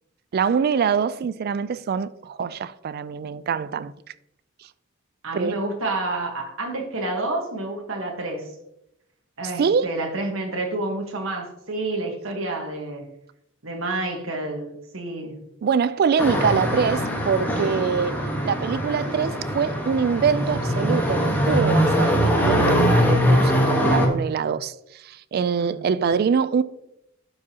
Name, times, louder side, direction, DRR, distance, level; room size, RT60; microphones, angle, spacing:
voice 1, 0.3-3.9 5.3-5.6 9.6-9.9 15.6-26.6, right 6 dB, 50° right, 0.3 m, -24 dB
voice 2, 5.2-8.5 9.4-13.1 13.6-15.4 25.6-26.1, right 2 dB, 70° right, 1.3 m, -29 dB
sound 1, 16.2-24.1, equal, 10° left, 1.2 m, -22 dB
12.0 x 4.9 x 2.8 m
head